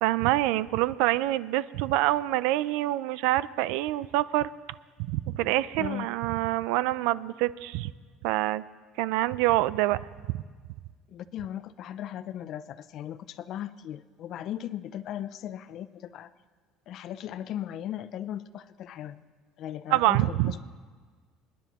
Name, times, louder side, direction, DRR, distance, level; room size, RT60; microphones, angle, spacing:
voice 1, 0.0-4.5 5.1-7.9 8.2-8.6 9.0-10.0 10.3-10.4 19.9-20.5, right 16 dB, 75° right, 18 dB, 0.3 m, -26 dB
voice 2, 11.1-16.3 16.9-19.2 19.6-20.6, left 11 dB, 45° left, 13 dB, 0.4 m, -37 dB
28.0 x 10.0 x 3.0 m, 1.5 s
cardioid pair, 160°, 0 cm